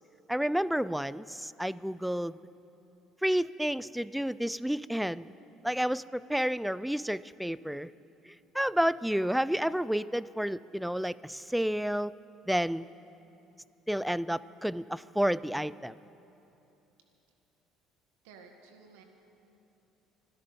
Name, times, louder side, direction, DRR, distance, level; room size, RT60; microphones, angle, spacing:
voice 1, 0.3-2.4 3.2-5.3 5.6-7.9 8.3-12.1 12.5-12.9 13.9-15.9, equal, 5° right, 19 dB, 0.4 m, -30 dB
voice 2, 18.2-19.0, right 5 dB, 85° right, 4 dB, 1.8 m, -54 dB
25.5 x 12.5 x 4.2 m, 2.9 s
hypercardioid pair, 70°, 0 cm